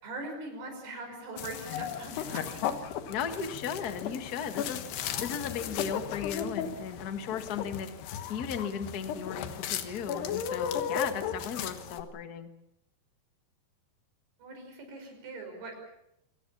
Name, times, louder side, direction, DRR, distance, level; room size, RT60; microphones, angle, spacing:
voice 1, 0.0-2.6 14.4-15.7, right 2 dB, 80° right, 3 dB, 7.7 m, -41 dB
sound 1, 1.4-12.0, left 8 dB, 90° left, 3.5 m, -35 dB
voice 2, 3.1-7.9 8.3-12.5, left 7 dB, 65° left, 8 dB, 0.9 m, -36 dB
27.0 x 18.0 x 7.2 m, 0.79 s
omnidirectional pair, 4.6 m